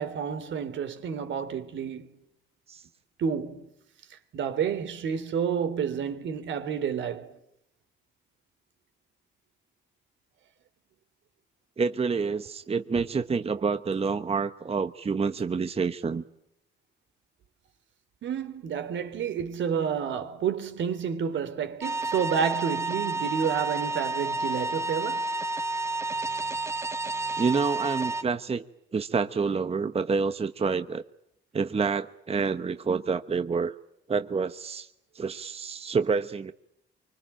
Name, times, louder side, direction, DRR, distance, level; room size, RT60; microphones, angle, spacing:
voice 1, 0.0-2.1 3.2-3.7 4.1-7.4 18.2-25.3, right 7 dB, 70° right, 3.3 m, -30 dB
voice 2, 11.8-16.2 27.4-28.6 28.9-31.0 31.5-33.7 34.1-34.9 35.1-36.5, right 5 dB, 30° right, 1.1 m, -28 dB
sound 1, 21.8-28.2, right 2 dB, 15° right, 1.3 m, -30 dB
25.0 x 25.0 x 9.0 m
cardioid pair, 90°, 20 cm